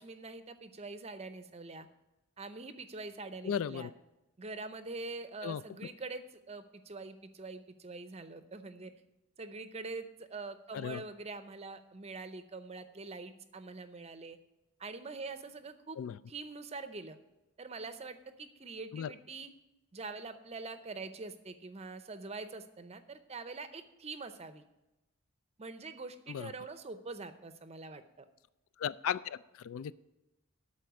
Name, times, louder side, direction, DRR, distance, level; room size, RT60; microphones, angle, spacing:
voice 1, 0.0-1.9 2.4-3.9 4.4-8.9 9.4-14.4 14.8-16.0 16.3-17.2 17.6-19.5 19.9-24.6 25.6-28.3, right 3 dB, 30° right, 11 dB, 0.6 m, -44 dB
voice 2, 3.4-3.9 5.4-5.6 10.7-11.0 16.0-16.2 18.9-19.1 26.3-26.5 28.8-29.9, left 8 dB, 65° left, 17 dB, 0.3 m, -36 dB
12.5 x 4.3 x 8.2 m, 0.98 s
head